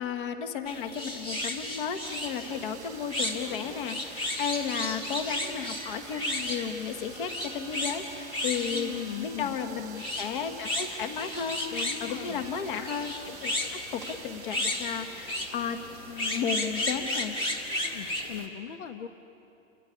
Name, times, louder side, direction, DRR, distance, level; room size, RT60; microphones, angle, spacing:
voice 1, 0.0-15.8 16.1-17.4, left 7 dB, 40° left, 7 dB, 1.5 m, -34 dB
sound 1, 0.7-18.5, left 1 dB, 10° left, 1.4 m, -34 dB
sound 2, 2.0-17.8, right 7 dB, 5° right, 0.7 m, -48 dB
voice 2, 8.7-9.6 11.7-12.4 17.9-19.1, left 9 dB, 65° left, 7 dB, 1.3 m, -38 dB
28.0 x 15.5 x 9.7 m, 2.8 s
hypercardioid pair, 170°, 39 cm